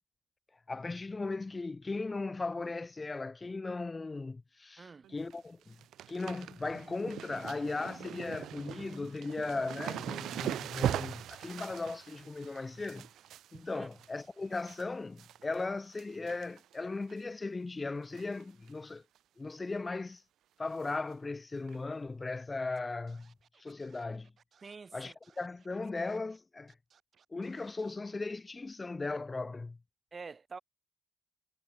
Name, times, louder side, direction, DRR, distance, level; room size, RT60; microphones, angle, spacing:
voice 1, 0.7-5.8 6.1-13.1 13.5-19.0 19.4-20.2 20.6-24.3 24.9-26.7 27.3-29.8, left 3 dB, 25° left, 0.6 m, -37 dB
voice 2, 4.8-5.1 13.7-13.9 24.6-25.1 30.1-30.6, right 4 dB, 35° right, 1.6 m, -47 dB
sound 1, 5.0-5.4 5.6-14.8 15.2-15.6 15.9-16.8 17.1-17.2 18.1-18.4 18.7-18.8 19.2-19.3 20.8-20.9 21.7-21.8, right 12 dB, 80° right, 0.5 m, -41 dB
Scratching (performance technique), 22.8-22.9 23.1-26.4 26.7-28.0, right 7 dB, 55° right, 6.4 m, -66 dB
cardioid pair, 80°, 0 cm